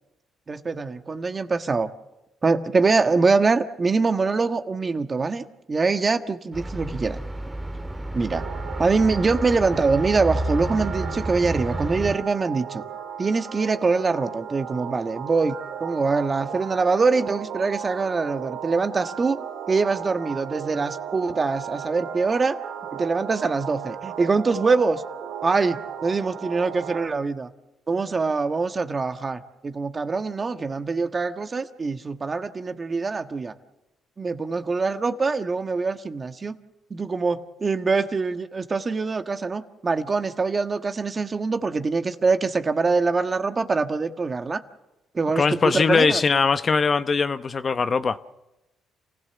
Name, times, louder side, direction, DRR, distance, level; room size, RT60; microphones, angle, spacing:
voice 1, 0.5-1.9 2.4-7.2 8.1-8.4 8.8-12.8 13.2-19.4 19.7-22.6 22.9-25.0 25.4-27.5 27.9-33.5 34.2-36.5 36.9-44.6 45.1-46.2, right 4 dB, 30° right, 1.4 m, -24 dB
sound 1, 6.5-12.1, right 1 dB, 15° right, 2.2 m, -30 dB
sound 2, 8.3-27.1, right 8 dB, 70° right, 2.1 m, -36 dB
voice 2, 45.4-48.2, left 5 dB, 40° left, 0.8 m, -21 dB
28.5 x 16.0 x 7.1 m
cardioid pair, 85°, 0 cm